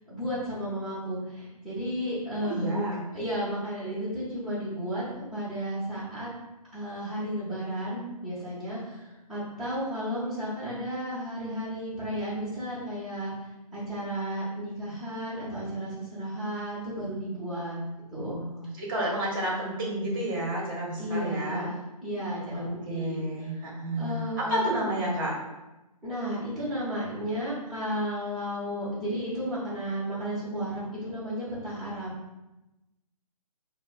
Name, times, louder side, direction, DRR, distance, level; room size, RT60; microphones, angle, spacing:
voice 1, 0.0-6.3 6.7-13.3 13.7-17.8 18.1-18.4 21.0-21.7 22.0-23.7 24.0-24.6 26.0-32.1, equal, ahead, -13 dB, 0.9 m, -33 dB
voice 2, 2.4-3.0 18.4-21.7 22.5-25.3, right 1 dB, 35° right, -3 dB, 1.0 m, -31 dB
4.6 x 2.1 x 2.3 m, 1.0 s
hypercardioid pair, 155°, 20 cm